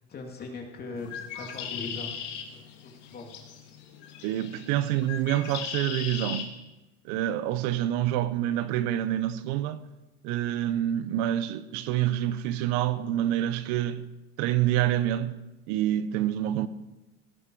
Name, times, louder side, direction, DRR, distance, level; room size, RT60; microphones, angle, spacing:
voice 1, 0.1-2.1 2.5-3.3, left 3 dB, 30° left, 2.7 m, -40 dB
Bird, 1.0-6.5, left 8 dB, 65° left, 2.2 m, -38 dB
voice 2, 4.2-6.6 7.0-9.8 10.2-14.1 14.4-15.4 15.7-16.7, right 12 dB, 70° right, 0.8 m, -27 dB
17.5 x 11.0 x 4.7 m
cardioid pair, 135°, 33 cm